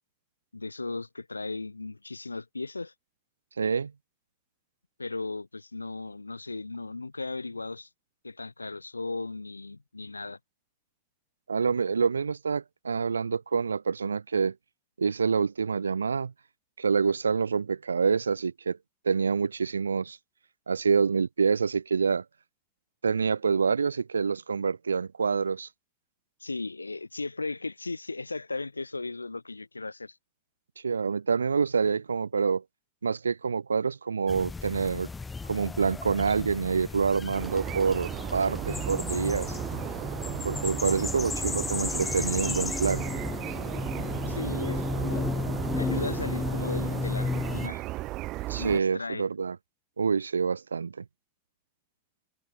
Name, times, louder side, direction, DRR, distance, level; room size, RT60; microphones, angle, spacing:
voice 1, 0.5-2.9 5.0-7.9 8.2-10.4 26.4-30.2 44.3-45.3 45.7-47.8 48.6-49.3, left 3 dB, 85° left, 6.1 m, -36 dB
voice 2, 3.6-3.9 11.5-14.5 15.0-16.3 16.8-18.8 19.0-20.2 20.7-22.2 23.0-25.7 30.8-32.6 33.0-35.1 35.5-39.5 40.4-43.0 48.5-49.6 50.0-51.0, right 5 dB, 75° right, 1.3 m, -27 dB
sound 1, 34.3-47.7, left 4 dB, 15° left, 6.2 m, -33 dB
sound 2, 37.3-48.8, right 18 dB, 40° right, 1.4 m, -35 dB
figure-of-eight pair, 85°, 0 cm